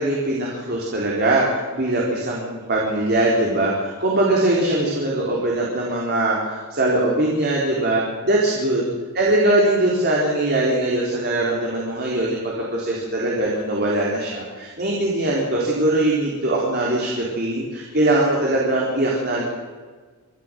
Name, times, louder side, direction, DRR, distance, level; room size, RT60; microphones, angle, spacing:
voice 1, 0.0-8.9 9.1-19.4, right 1 dB, 45° right, -3 dB, 4.2 m, -21 dB
26.0 x 13.0 x 7.8 m, 1.4 s
head